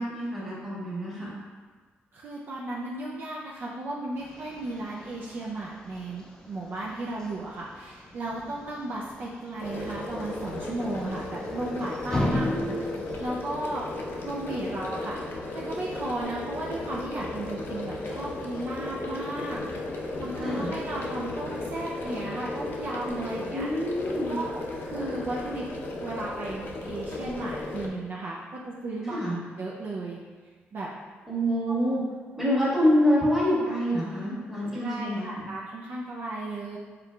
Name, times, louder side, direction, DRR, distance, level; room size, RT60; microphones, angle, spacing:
voice 1, 0.0-1.3 12.2-12.8 20.4-20.7 23.5-24.4 29.0-29.4 31.3-32.0 32.4-35.3, equal, 10° right, -8 dB, 1.4 m, -26 dB
voice 2, 2.1-12.5 13.2-13.8 14.2-15.2 15.5-19.6 19.9-23.7 24.3-24.6 24.8-25.7 25.9-29.2 29.6-30.2 30.7-30.9 34.7-36.8, right 2 dB, 55° right, -4 dB, 0.5 m, -35 dB
sound 1, 4.2-13.2, left 1 dB, 15° left, 0.5 m, -37 dB
sound 2, 9.6-27.9, left 2 dB, 60° left, 0.6 m, -35 dB
4.5 x 3.7 x 2.3 m, 1.5 s
cardioid pair, 120°, 4 cm